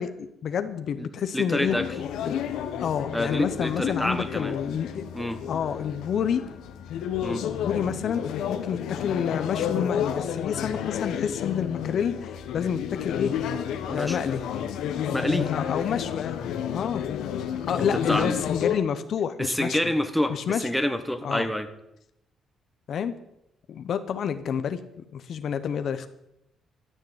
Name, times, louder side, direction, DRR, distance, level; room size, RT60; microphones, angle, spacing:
voice 1, 0.0-1.8 2.2-2.4 2.8-5.1 5.5-6.4 7.4-13.3 13.9-14.4 15.5-16.4 16.7-17.0 17.7-19.9 20.3-20.7 21.2-21.5 22.9-23.2 23.7-26.1, left 8 dB, 65° left, 10 dB, 0.8 m, -29 dB
voice 2, 1.3-1.9 3.1-4.6 5.1-5.4 7.2-7.4 13.8-14.2 15.1-15.5 17.8-18.3 19.4-21.7, left 1 dB, ahead, 8 dB, 1.2 m, -27 dB
sound 1, 1.6-18.8, left 9 dB, 85° left, 1.1 m, -31 dB
13.0 x 6.6 x 7.9 m, 0.84 s
cardioid pair, 90°, 0 cm